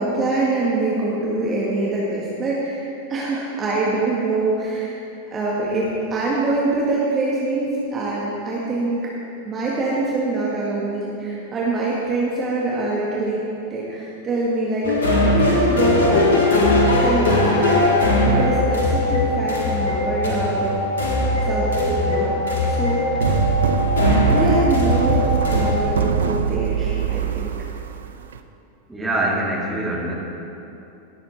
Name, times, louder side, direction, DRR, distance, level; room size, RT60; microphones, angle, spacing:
voice 1, 0.0-5.0 5.3-9.1 9.4-13.4 13.7-16.3 17.0-20.8 21.5-22.3 22.6-23.5 24.3-27.5, right 2 dB, 25° right, -5 dB, 1.8 m, -24 dB
sound 1, 14.8-25.8, left 2 dB, 70° left, 1.6 m, -19 dB
sound 2, 23.2-28.4, right 8 dB, 65° right, 0.5 m, -23 dB
voice 2, 28.9-30.1, right 1 dB, 5° right, -4 dB, 2.3 m, -25 dB
18.0 x 7.8 x 4.1 m, 2.8 s
figure-of-eight pair, 90°, 0 cm